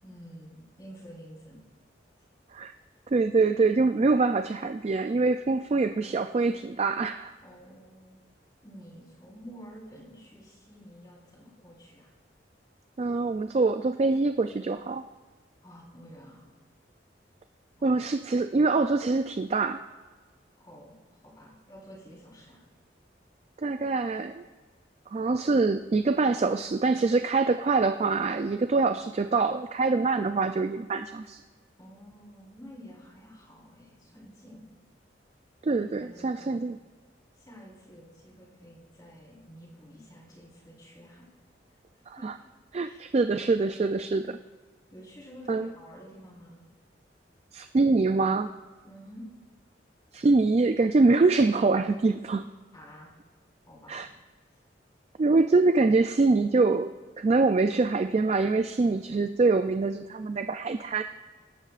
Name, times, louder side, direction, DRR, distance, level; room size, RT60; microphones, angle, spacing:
voice 1, 0.0-1.6 7.4-8.2 8.6-12.1 15.6-16.5 17.8-18.1 20.6-21.0 21.2-22.6 30.4-31.3 31.8-34.7 35.7-36.6 37.3-41.3 41.9-42.3 42.8-43.1 44.9-46.7 48.8-49.3 52.7-53.1 53.7-54.1, equal, 20° left, -5 dB, 4.1 m, -49 dB
voice 2, 3.1-7.3 13.0-15.0 17.8-19.8 23.6-24.4 25.1-31.4 35.6-36.7 42.1-42.3 42.7-44.4 45.5-45.7 47.5-48.5 50.1-52.5 53.9-54.1 55.2-61.0, right 3 dB, 35° right, 9 dB, 0.3 m, -24 dB
24.0 x 12.0 x 2.5 m, 1.3 s
head